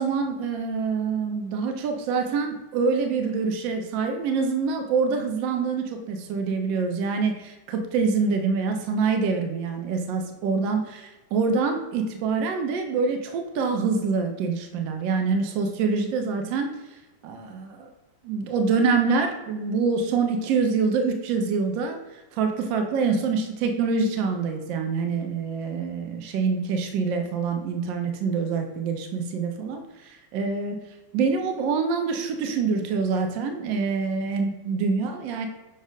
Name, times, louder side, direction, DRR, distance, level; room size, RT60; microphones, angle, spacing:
voice 1, 0.0-16.7 17.2-17.9 18.2-22.0 22.3-30.8 31.1-35.5, right 5 dB, 45° right, 5 dB, 0.6 m, -25 dB
6.1 x 2.0 x 3.7 m, 1.0 s
figure-of-eight pair, 90°, 0 cm